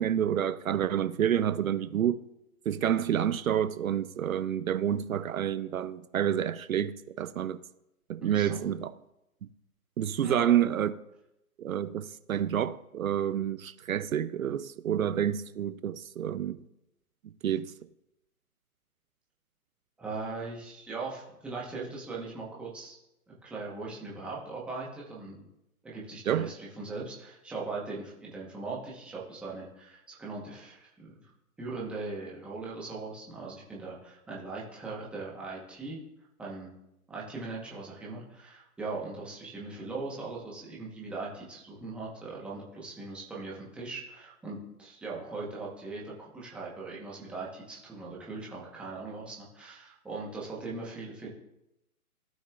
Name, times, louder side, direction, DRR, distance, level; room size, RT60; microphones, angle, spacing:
voice 1, 0.0-2.2 2.7-7.6 8.1-8.9 10.0-10.9 11.6-16.6 17.2-17.7 26.3-26.5, right 10 dB, 65° right, 0.6 m, -28 dB
voice 2, 8.2-8.6 10.2-10.5 20.0-23.0 23.4-25.4 25.8-31.2 31.6-36.0 36.4-36.7 37.1-51.3, right 3 dB, ahead, 1.0 m, -39 dB
15.5 x 6.3 x 2.4 m
hypercardioid pair, 155°, 45 cm